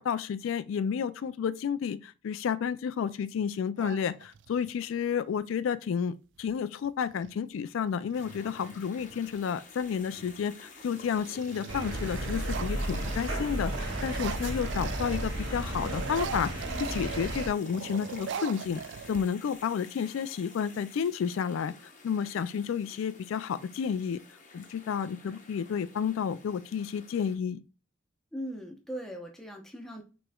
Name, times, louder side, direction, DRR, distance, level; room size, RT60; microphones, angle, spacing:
voice 1, 0.0-18.8 19.1-21.7 22.0-24.2 24.5-27.6, left 7 dB, 85° left, 0.3 m, -31 dB
sound 1, 3.8-4.7 6.4-6.5 6.8-7.3 7.9-9.4 10.0-10.4 10.8-15.4 15.6-19.6, right 7 dB, 65° right, 0.3 m, -41 dB
sound 2, 8.1-27.4, left 3 dB, 40° left, 0.8 m, -51 dB
sound 3, 11.7-17.5, right 1 dB, 80° right, 1.7 m, -33 dB
voice 2, 28.3-30.0, equal, ahead, 0.8 m, -39 dB
5.9 x 3.1 x 2.2 m
head